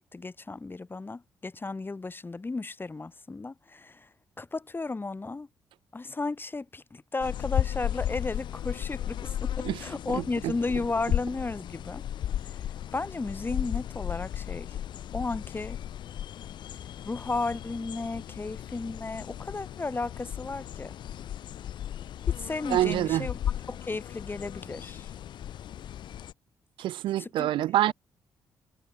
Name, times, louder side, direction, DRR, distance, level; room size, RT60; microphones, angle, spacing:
voice 1, 0.0-4.1 4.4-5.5 5.9-12.0 12.9-14.8 15.1-15.8 17.0-20.9 22.4-23.4 23.7-25.1 27.2-27.9, left 3 dB, 25° left, 0.9 m, -34 dB
sound 1, 7.2-26.3, left 11 dB, 60° left, 0.6 m, -35 dB
voice 2, 10.1-10.5 22.7-23.3 26.8-27.9, right 14 dB, 65° right, 0.6 m, -26 dB
hypercardioid pair, 45°, 9 cm